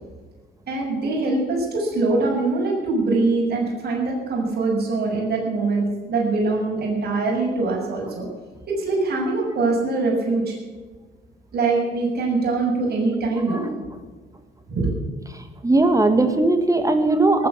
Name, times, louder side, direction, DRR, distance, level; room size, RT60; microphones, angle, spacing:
voice 1, 0.7-8.3 8.7-10.5 11.5-13.6 14.7-14.9, right 3 dB, 55° right, -3 dB, 6.6 m, -23 dB
voice 2, 15.6-17.5, right 2 dB, 15° right, 7 dB, 1.7 m, -18 dB
18.5 x 8.7 x 8.4 m, 1.4 s
cardioid pair, 90°, 20 cm